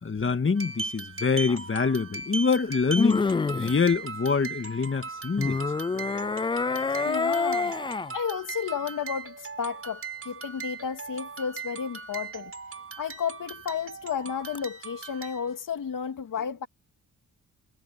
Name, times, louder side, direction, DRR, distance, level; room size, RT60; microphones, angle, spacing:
voice 1, 0.0-3.3 3.6-5.6, left 5 dB, 35° left, 2.1 m, -25 dB
sound 1, 0.5-15.6, right 4 dB, 40° right, 6.9 m, -38 dB
sound 2, 1.5-1.6 3.0-3.8 5.4-8.1 14.5-14.6, left 4 dB, 15° left, 0.3 m, -27 dB
voice 2, 7.0-7.7 8.1-12.5 13.0-16.7, left 7 dB, 65° left, 2.4 m, -32 dB
cardioid pair, 60°, 35 cm